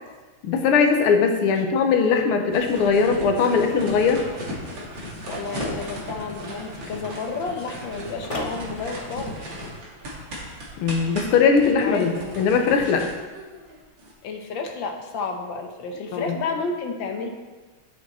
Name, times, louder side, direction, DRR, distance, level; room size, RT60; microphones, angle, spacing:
voice 1, 0.4-4.2 10.8-13.1 16.1-16.4, left 5 dB, 90° left, 5 dB, 1.8 m, -20 dB
sound 1, 2.5-14.1, equal, 60° right, 2.6 m, -36 dB
voice 2, 5.3-9.4 11.8-12.1 14.2-17.3, left 4 dB, 65° left, 4 dB, 1.7 m, -31 dB
sound 2, 5.4-6.1 8.2-8.6 11.3-11.7, left 1 dB, 35° left, 0.5 m, -33 dB
9.8 x 7.9 x 4.2 m, 1.3 s
omnidirectional pair, 2.3 m